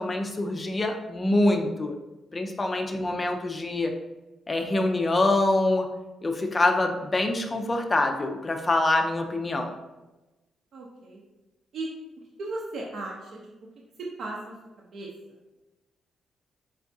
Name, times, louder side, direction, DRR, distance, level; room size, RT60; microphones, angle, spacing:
voice 1, 0.0-1.9 2.3-3.9 4.5-5.9 6.2-9.7, left 2 dB, 20° left, 4 dB, 0.4 m, -25 dB
voice 2, 3.0-3.4 10.7-11.2 11.7-11.9 12.4-13.5 14.2-15.4, right 2 dB, 60° right, -3 dB, 0.6 m, -37 dB
4.4 x 3.5 x 2.6 m, 1.1 s
cardioid pair, 140°, 0 cm